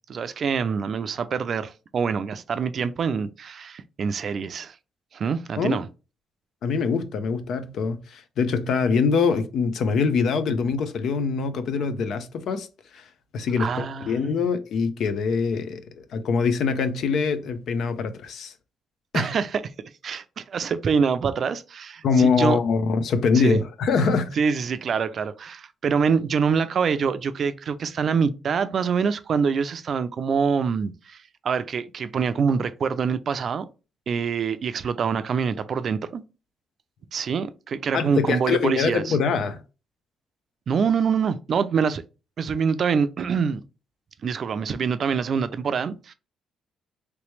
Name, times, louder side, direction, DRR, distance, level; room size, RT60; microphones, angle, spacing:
voice 1, 0.1-4.8 5.1-5.9 13.6-14.4 19.1-19.6 20.0-22.6 23.4-23.6 24.3-33.7 34.1-36.2 37.1-39.2 40.7-42.0 42.4-43.6 44.2-46.1, right 6 dB, 55° right, 0.4 m, -25 dB
voice 2, 6.6-12.7 12.9-13.0 13.3-18.5 19.1-19.3 22.0-24.4 37.9-39.6, left 5 dB, 70° left, 0.5 m, -24 dB
3.2 x 3.0 x 3.1 m
cardioid pair, 90°, 0 cm